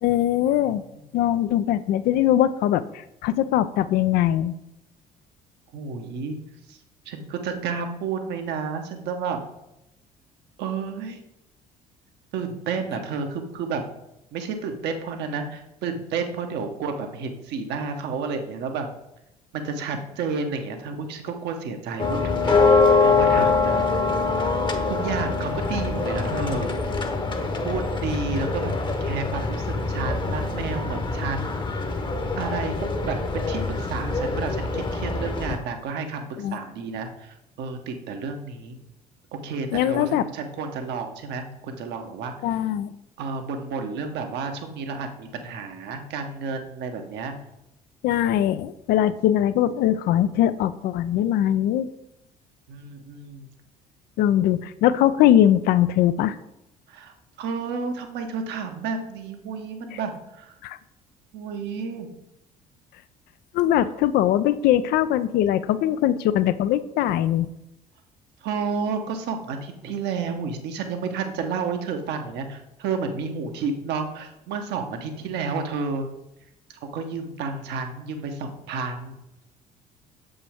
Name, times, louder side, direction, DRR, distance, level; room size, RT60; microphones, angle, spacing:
voice 1, 0.0-0.8 1.1-4.5 36.4-36.6 39.7-40.2 42.4-42.9 48.0-51.9 54.2-56.4 60.6-60.8 63.5-67.5, left 11 dB, 55° left, 14 dB, 0.4 m, -21 dB
voice 2, 0.6-1.1 5.7-6.4 6.7-6.8 7.0-9.4 10.6-11.2 12.3-13.8 14.3-18.9 19.5-23.9 24.9-26.7 27.6-31.5 32.4-38.8 39.4-42.6 43.2-47.3 52.7-53.5 56.9-60.5 61.3-62.1 65.7-66.2 68.4-76.0 76.9-79.2, right 5 dB, 60° right, 5 dB, 1.0 m, -31 dB
sound 1, 22.0-35.6, left 4 dB, 25° left, 0.9 m, -24 dB
6.9 x 5.4 x 3.5 m, 0.87 s
hypercardioid pair, 55°, 20 cm